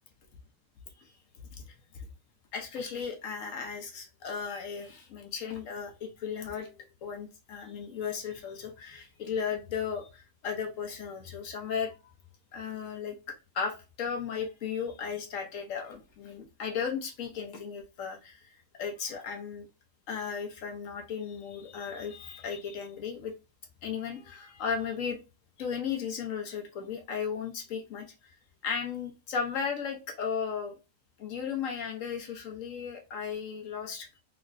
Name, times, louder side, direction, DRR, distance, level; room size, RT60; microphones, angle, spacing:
voice 1, 1.5-2.1 2.5-6.7 7.0-11.9 12.5-19.7 20.1-23.3 23.8-25.2 25.6-28.3 28.6-30.8 31.2-34.2, left 6 dB, 60° left, 1.0 m, -35 dB
3.4 x 3.0 x 2.5 m
omnidirectional pair, 1.9 m